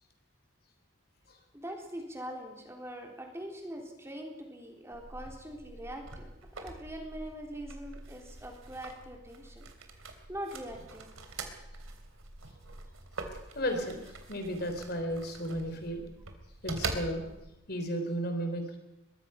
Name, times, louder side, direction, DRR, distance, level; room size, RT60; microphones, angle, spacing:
voice 1, 1.5-6.3 6.6-9.7 10.0-11.1, equal, 15° right, 2 dB, 3.5 m, -43 dB
sound 1, 4.9-17.5, right 3 dB, 85° right, 3.3 m, -44 dB
voice 2, 13.6-16.0 16.6-17.3 17.7-18.7, equal, 50° left, 6 dB, 3.8 m, -34 dB
23.0 x 21.0 x 5.8 m, 0.95 s
head